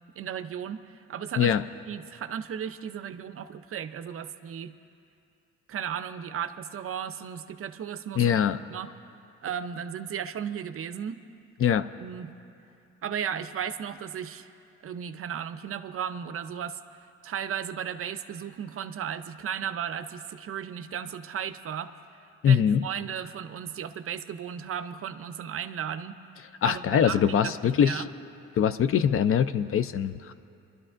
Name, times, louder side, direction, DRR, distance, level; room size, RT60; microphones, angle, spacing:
voice 1, 0.2-0.8 1.1-1.5 1.9-4.7 5.7-8.4 8.7-8.9 9.4-11.2 12.0-12.3 13.0-14.5 14.8-16.8 17.2-21.9 22.5-26.2 26.6-28.1, right 8 dB, 50° right, 11 dB, 0.5 m, -35 dB
voice 2, 8.2-8.6 11.6-11.9 22.4-22.8 26.6-28.0 28.6-30.3, left 8 dB, 45° left, 13 dB, 0.4 m, -23 dB
27.0 x 12.0 x 2.5 m, 2.5 s
cardioid pair, 90°, 30 cm